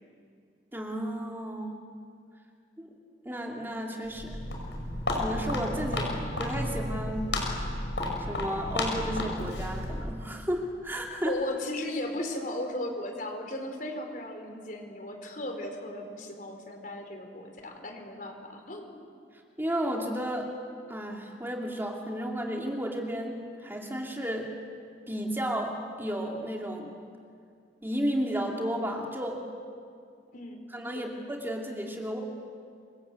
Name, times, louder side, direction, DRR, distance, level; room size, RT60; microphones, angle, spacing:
voice 1, 0.7-1.7 2.8-2.9 3.2-4.3 5.1-6.1 6.4-7.3 8.3-11.4 19.6-20.5 20.9-24.5 25.1-26.9 27.8-29.4 30.7-32.2, equal, 15° right, 0 dB, 2.7 m, -33 dB
Walk footsteps, 4.0-10.2, left 1 dB, 90° left, 6.2 m, -32 dB
voice 2, 11.2-19.1 30.3-30.6 30.9-31.1, left 1 dB, 50° left, 4 dB, 4.5 m, -36 dB
28.0 x 25.0 x 8.3 m, 2.3 s
head